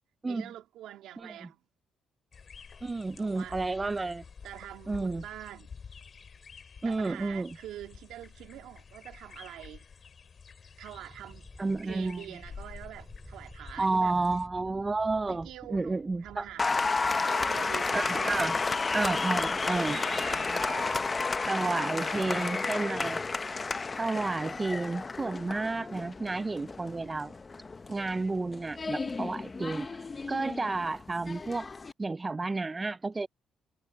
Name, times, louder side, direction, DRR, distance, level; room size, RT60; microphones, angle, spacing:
voice 1, 0.3-1.6 3.2-3.7 4.4-5.7 6.8-9.8 10.8-11.5 11.8-14.2 15.3-18.4 19.7-21.1 21.6-23.0, right 12 dB, 85° right, 3.1 m, -45 dB
sound 1, 2.3-14.5, left 6 dB, 45° left, 2.7 m, -50 dB
voice 2, 2.8-4.2 4.9-5.2 6.8-7.6 11.6-12.2 13.8-16.5 17.9-18.6 18.9-20.0 21.5-23.3 24.0-27.3 27.9-29.9 30.3-31.7 32.0-33.3, right 3 dB, 25° right, 0.5 m, -31 dB
sound 2, 10.8-21.4, right 1 dB, 5° right, 6.3 m, -53 dB
Applause, 16.6-31.9, left 4 dB, 30° left, 0.8 m, -32 dB
cardioid pair, 90°, 0 cm